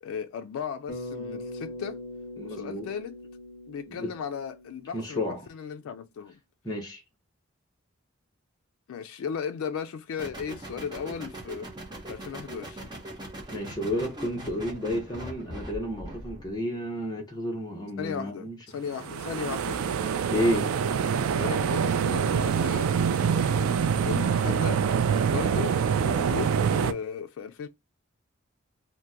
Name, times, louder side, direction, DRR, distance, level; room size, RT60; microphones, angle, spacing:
voice 1, 0.0-2.0 2.4-3.2 3.7-6.4 8.9-11.7 12.1-12.9 18.0-19.8 21.4-24.8 25.3-27.7, left 7 dB, 80° left, 0.3 m, -36 dB
Bass guitar, 0.9-5.3, left 1 dB, 50° left, 1.0 m, -41 dB
voice 2, 2.4-2.9 3.9-4.1 4.9-5.5 6.6-7.0 13.5-18.6 20.3-20.7, left 1 dB, 20° left, 0.7 m, -31 dB
sound 1, 10.2-16.5, right 1 dB, 20° right, 0.7 m, -41 dB
sound 2, 18.9-26.9, right 7 dB, 80° right, 0.3 m, -25 dB
2.8 x 2.1 x 3.4 m
head